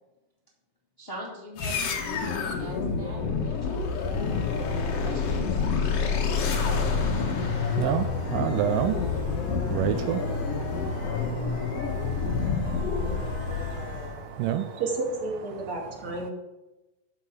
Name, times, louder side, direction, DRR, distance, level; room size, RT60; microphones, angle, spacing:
voice 1, 1.0-3.8 4.7-5.6, equal, 25° left, -3 dB, 1.3 m, -41 dB
sound 1, 1.6-14.2, left 5 dB, 55° left, 2.0 m, -28 dB
voice 2, 6.7-14.8, right 10 dB, 80° right, 8 dB, 2.2 m, -32 dB
voice 3, 14.8-16.3, right 3 dB, 55° right, -2 dB, 3.6 m, -31 dB
12.5 x 5.5 x 7.0 m, 1.0 s
omnidirectional pair, 4.0 m